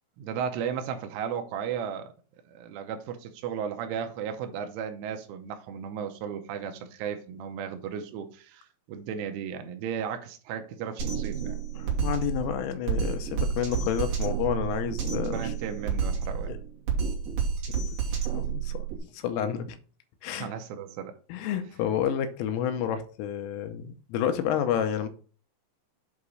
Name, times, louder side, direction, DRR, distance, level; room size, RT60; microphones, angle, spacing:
voice 1, 0.2-2.1 2.5-11.6 15.2-16.6 20.4-21.2, right 7 dB, 80° right, 3.2 m, -35 dB
Drum kit, 11.0-19.0, right 6 dB, 60° right, 2.7 m, -30 dB
voice 2, 11.8-15.5 16.5-16.6 18.1-18.9 19.1-19.8 20.2-20.5 21.3-25.1, left 9 dB, 85° left, 3.4 m, -30 dB
8.3 x 2.9 x 6.2 m
omnidirectional pair, 5.7 m